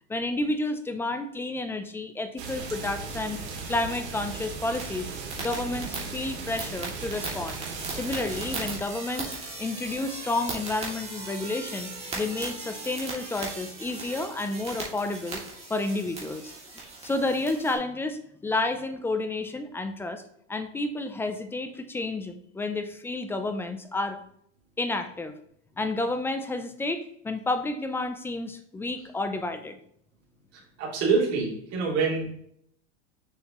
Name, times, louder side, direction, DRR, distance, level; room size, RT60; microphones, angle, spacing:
voice 1, 0.1-3.4 3.7-5.1 5.4-7.6 7.9-9.3 9.6-15.4 15.7-16.5 17.0-20.2 20.5-24.2 24.8-25.3 25.8-29.7, left 2 dB, 5° left, 8 dB, 0.4 m, -30 dB
sound 1, 2.4-8.8, right 4 dB, 75° right, 2.6 m, -37 dB
sound 2, 4.8-17.8, right 3 dB, 20° right, 2.3 m, -38 dB
voice 2, 30.8-32.3, right 4 dB, 45° right, -4 dB, 2.9 m, -25 dB
6.6 x 6.3 x 3.0 m, 0.68 s
supercardioid pair, 135°, 34 cm